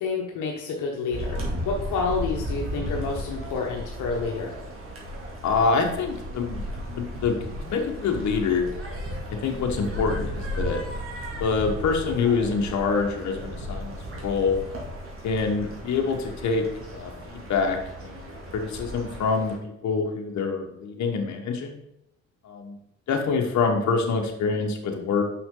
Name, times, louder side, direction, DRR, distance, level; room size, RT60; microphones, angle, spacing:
voice 1, 0.0-4.5, left 4 dB, 85° left, 0 dB, 1.0 m, -29 dB
sound 1, 1.1-19.6, equal, 45° right, 2.4 m, -35 dB
voice 2, 5.4-8.7 9.3-10.8 11.4-14.6 15.2-21.8 22.4-22.8 23.1-25.2, left 4 dB, 65° left, 3 dB, 1.3 m, -26 dB
5.8 x 5.8 x 3.8 m, 0.81 s
cardioid pair, 90°, 30 cm